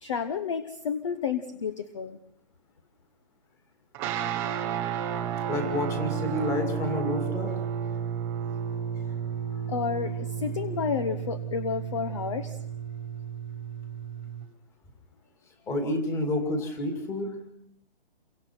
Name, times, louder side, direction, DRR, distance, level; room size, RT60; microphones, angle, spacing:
voice 1, 0.0-2.2 9.7-12.6, left 6 dB, 30° left, 11 dB, 0.9 m, -31 dB
sound 1, 3.9-14.5, right 8 dB, 5° right, 0.8 m, -32 dB
voice 2, 5.5-7.6 15.7-17.3, left 1 dB, 10° left, 4 dB, 2.3 m, -29 dB
28.5 x 24.0 x 4.5 m, 0.70 s
hypercardioid pair, 170°, 31 cm